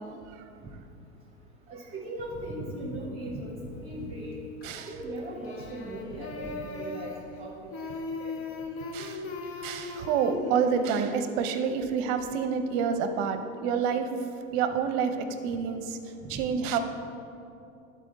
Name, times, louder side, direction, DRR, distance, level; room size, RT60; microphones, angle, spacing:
voice 1, 1.7-4.3 4.8-7.7 8.2-8.3 16.2-16.3, right 1 dB, 20° right, -4 dB, 1.4 m, -38 dB
sound 1, 4.6-5.0 5.3-7.4 7.7-11.0, left 3 dB, 30° left, 0.8 m, -38 dB
voice 2, 8.9-9.3 9.5-14.1 14.5-16.0 16.3-16.8, right 6 dB, 50° right, 8 dB, 0.8 m, -28 dB
11.0 x 4.4 x 4.0 m, 2.7 s
hypercardioid pair, 95°, 41 cm